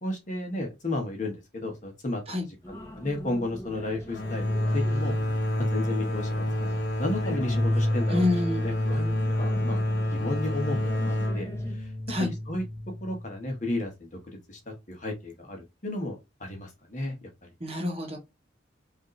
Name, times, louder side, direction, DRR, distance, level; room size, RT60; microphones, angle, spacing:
voice 1, 0.0-2.2 2.7-5.1 5.6-8.2 8.6-9.8 10.1-11.5 11.8-11.9 12.2-12.6 13.0-17.3, left 1 dB, 40° left, 1.1 m, -33 dB
sound 1, 2.6-11.8, equal, 15° left, 0.8 m, -43 dB
sound 2, 4.1-13.6, left 1 dB, 60° left, 0.8 m, -28 dB
voice 2, 8.1-8.7 12.1-12.3 17.6-18.2, left 2 dB, 30° right, 1.0 m, -27 dB
5.1 x 2.6 x 3.1 m
head